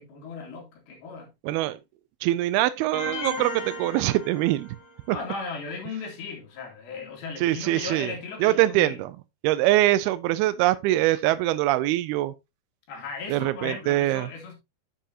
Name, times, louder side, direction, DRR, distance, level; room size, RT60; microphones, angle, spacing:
voice 1, 0.0-1.3 5.1-9.0 12.9-14.5, left 4 dB, 75° left, 4.2 m, -37 dB
voice 2, 1.4-1.8 2.2-4.8 5.1-5.2 7.4-8.1 8.4-9.1 9.4-12.3 13.3-14.3, right 15 dB, 85° right, 2.5 m, -23 dB
sound 1, 2.9-5.0, left 1 dB, 35° left, 1.6 m, -35 dB
10.0 x 7.2 x 2.7 m
omnidirectional pair, 4.5 m